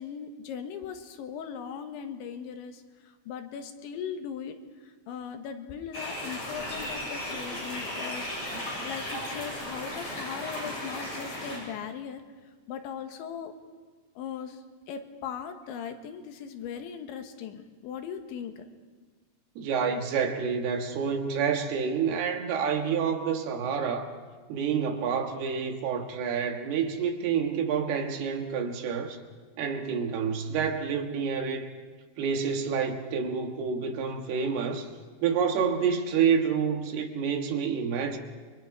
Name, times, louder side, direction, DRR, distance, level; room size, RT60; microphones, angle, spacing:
voice 1, 0.0-4.6 4.8-8.4 8.6-12.2 12.7-13.5 14.2-18.6, left 7 dB, 90° left, 3.8 m, -39 dB
sound 1, 5.9-11.6, left 1 dB, 35° left, 9.0 m, -35 dB
voice 2, 19.6-24.1 24.5-29.2 29.6-31.7 32.2-34.9 35.2-38.2, right 6 dB, 70° right, 3.2 m, -28 dB
29.5 x 24.0 x 4.9 m
omnidirectional pair, 5.2 m